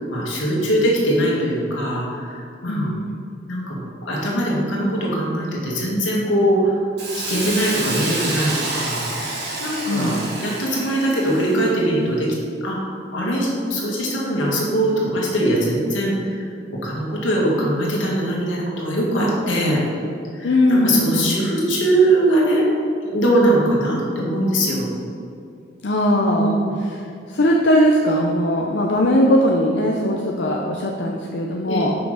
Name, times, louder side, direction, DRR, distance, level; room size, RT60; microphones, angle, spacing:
voice 1, 0.0-2.9 3.4-3.8 4.1-6.8 7.1-10.1 10.4-12.3 12.6-16.5 16.8-19.8 20.3-22.6 23.0-24.9 26.4-26.7 31.7-31.9, right 1 dB, 85° left, -4 dB, 1.8 m, -21 dB
voice 2, 2.7-3.1 9.9-10.2 20.4-21.4 25.8-26.6 27.3-31.9, equal, 65° left, -1 dB, 0.6 m, -19 dB
Hiss, 7.0-11.7, right 2 dB, 60° right, 1.3 m, -28 dB
6.0 x 5.8 x 4.9 m, 2.4 s
head